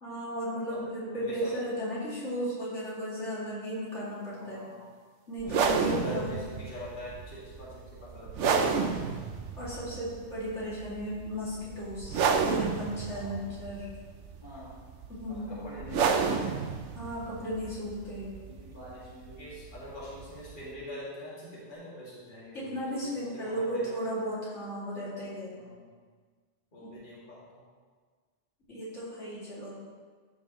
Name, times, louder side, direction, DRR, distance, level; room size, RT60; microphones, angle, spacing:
voice 1, 0.0-4.7 5.3-6.3 8.5-9.0 9.6-13.9 15.1-15.5 16.9-18.4 22.5-25.6 26.8-26.9 28.7-29.7, equal, 85° left, -8 dB, 2.8 m, -35 dB
voice 2, 1.2-1.6 4.4-4.8 5.4-8.7 13.1-13.5 14.4-14.8 15.3-16.5 18.5-24.0 25.6-25.9 26.7-27.6, equal, 45° left, -8 dB, 2.2 m, -44 dB
sound 1, 5.4-20.7, right 5 dB, 85° right, 1.0 m, -32 dB
13.0 x 5.6 x 3.1 m, 1.5 s
omnidirectional pair, 1.2 m